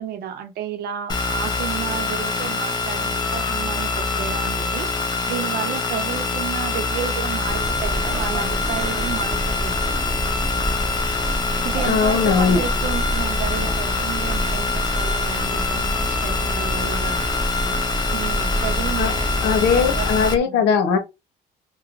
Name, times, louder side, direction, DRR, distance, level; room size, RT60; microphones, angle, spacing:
voice 1, 0.0-4.9 5.3-10.0 11.6-17.3 18.0-20.6, right 8 dB, 65° right, 0.7 m, -32 dB
sound 1, 1.1-20.3, left 3 dB, 25° left, 0.6 m, -25 dB
sound 2, 7.5-20.4, equal, 5° right, 0.8 m, -28 dB
voice 2, 11.8-12.6 19.0-19.1 19.4-21.0, left 6 dB, 85° left, 0.8 m, -19 dB
3.0 x 2.2 x 2.4 m
cardioid pair, 110°, 17 cm